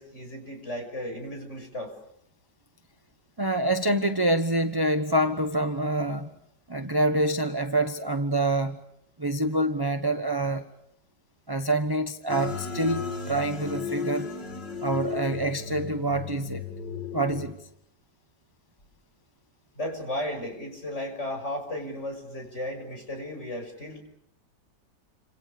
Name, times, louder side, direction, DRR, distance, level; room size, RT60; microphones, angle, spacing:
voice 1, 0.0-1.9 19.7-24.0, left 1 dB, 40° left, 6.6 m, -35 dB
voice 2, 3.4-6.3 6.7-8.8 9.2-10.6 11.5-14.3 14.8-16.6 17.1-17.6, right 1 dB, 15° right, 1.0 m, -26 dB
sound 1, 12.3-17.6, left 5 dB, 90° left, 3.4 m, -34 dB
30.0 x 27.0 x 6.8 m
omnidirectional pair, 1.9 m